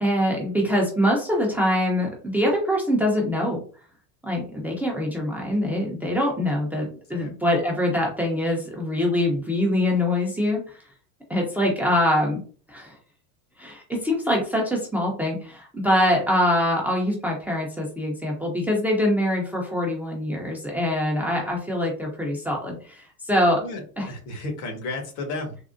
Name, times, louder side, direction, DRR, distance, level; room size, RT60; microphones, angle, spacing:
voice 1, 0.0-3.6 4.2-10.8 11.3-12.4 12.7-13.0 13.6-23.6 24.0-24.1, left 1 dB, 5° right, -1 dB, 0.5 m, -24 dB
voice 2, 23.6-25.6, left 2 dB, 65° left, 3 dB, 1.3 m, -33 dB
3.6 x 2.0 x 2.4 m, 0.40 s
supercardioid pair, 125°, 44 cm